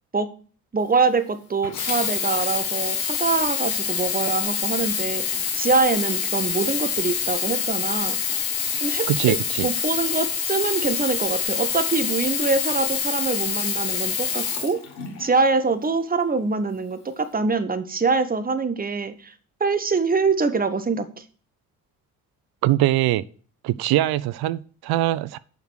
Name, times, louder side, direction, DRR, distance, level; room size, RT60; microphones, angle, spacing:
voice 1, 0.7-5.2 5.5-8.2 8.8-9.4 9.6-14.8 15.2-19.3 19.6-21.0, right 4 dB, 20° right, 1.2 m, -24 dB
Sink (filling or washing), 1.6-15.4 16.1-16.2, left 7 dB, 85° left, 1.4 m, -26 dB
voice 2, 9.1-9.7 22.6-23.2 23.6-25.4, right 15 dB, 60° right, 0.6 m, -22 dB
7.4 x 5.7 x 6.3 m
hypercardioid pair, 45°, 43 cm